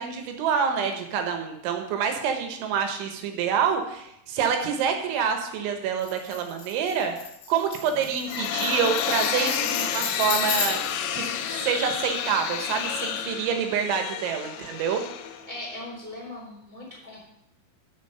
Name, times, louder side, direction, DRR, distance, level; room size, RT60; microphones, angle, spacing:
voice 1, 0.0-7.1 7.5-10.8 11.1-15.0, right 7 dB, 75° right, 5 dB, 3.1 m, -27 dB
Tambourine, 6.0-11.0, left 5 dB, 65° left, 3.6 m, -34 dB
sound 1, 7.9-15.8, left 9 dB, 85° left, 3.4 m, -30 dB
voice 2, 15.5-17.3, left 1 dB, 10° right, -5 dB, 1.5 m, -39 dB
13.0 x 5.0 x 5.5 m, 0.78 s
omnidirectional pair, 5.9 m